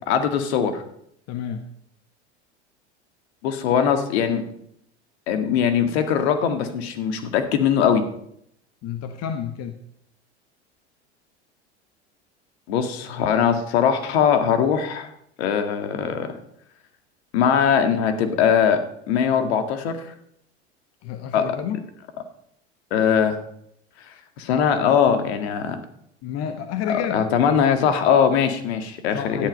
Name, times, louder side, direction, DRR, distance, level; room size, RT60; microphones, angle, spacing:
voice 1, 0.1-0.8 3.4-4.4 5.3-8.0 12.7-15.1 15.4-16.3 17.3-18.8 19.1-20.0 21.3-21.5 22.9-23.4 24.4-25.8 26.9-29.5, left 7 dB, 65° left, 7 dB, 2.0 m, -21 dB
voice 2, 1.3-1.6 8.8-9.8 21.0-21.8 26.2-27.3 29.1-29.5, left 9 dB, 45° left, 7 dB, 1.4 m, -29 dB
13.0 x 10.5 x 5.4 m, 0.72 s
hypercardioid pair, 85°, 34 cm